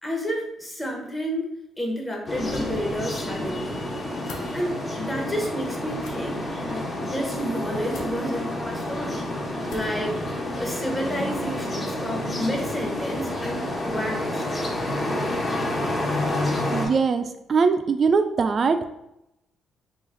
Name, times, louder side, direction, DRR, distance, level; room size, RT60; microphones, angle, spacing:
voice 1, 0.0-3.8 4.5-9.2 9.7-10.2 10.6-14.4, equal, 15° left, 0 dB, 0.9 m, -30 dB
sound 1, 2.3-16.9, left 1 dB, 40° left, 1.2 m, -29 dB
sound 2, 4.2-4.5 6.0-6.2 7.9-8.1 9.7-10.0, left 3 dB, 90° left, 0.5 m, -41 dB
voice 2, 16.7-18.8, right 5 dB, 45° right, 9 dB, 0.3 m, -21 dB
3.1 x 2.4 x 3.8 m, 0.85 s
cardioid pair, 90°, 0 cm